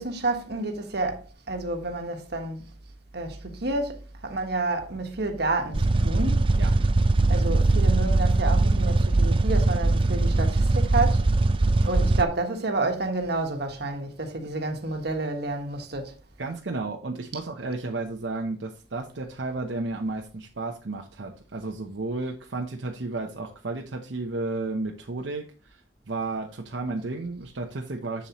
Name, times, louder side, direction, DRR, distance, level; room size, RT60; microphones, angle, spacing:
voice 1, 0.0-2.6 3.1-6.5 7.3-11.2 11.8-16.1, right 2 dB, 65° right, 1.5 m, -29 dB
sound 1, 5.7-12.2, right 2 dB, 30° right, 0.4 m, -21 dB
voice 2, 16.4-25.8 26.1-28.3, right 3 dB, 85° right, 0.8 m, -32 dB
7.2 x 7.1 x 3.0 m
head